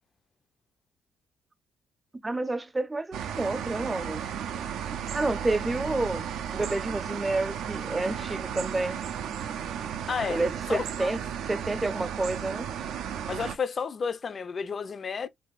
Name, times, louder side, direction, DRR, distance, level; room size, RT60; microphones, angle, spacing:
voice 1, 2.2-4.3 5.1-6.3 6.5-9.0 10.3-11.2 11.5-12.7, right 2 dB, 20° right, 0.4 m, -29 dB
sound 1, 3.1-13.6, right 8 dB, 80° right, 0.4 m, -34 dB
voice 2, 10.1-10.4 10.7-11.2 13.3-15.3, left 6 dB, 45° left, 0.4 m, -31 dB
3.4 x 3.0 x 2.3 m
cardioid pair, 90°, 0 cm